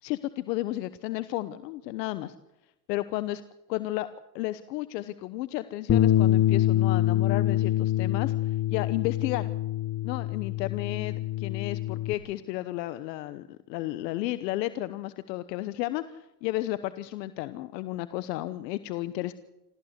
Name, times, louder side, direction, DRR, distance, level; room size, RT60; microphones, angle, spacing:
voice 1, 0.0-2.3 2.9-3.4 3.7-4.1 4.3-8.3 8.7-9.5 10.0-19.3, left 16 dB, 85° left, 14 dB, 1.1 m, -33 dB
Bass guitar, 5.9-12.1, left 13 dB, 35° left, 1.4 m, -25 dB
28.0 x 14.5 x 8.1 m, 0.93 s
supercardioid pair, 85°, 48 cm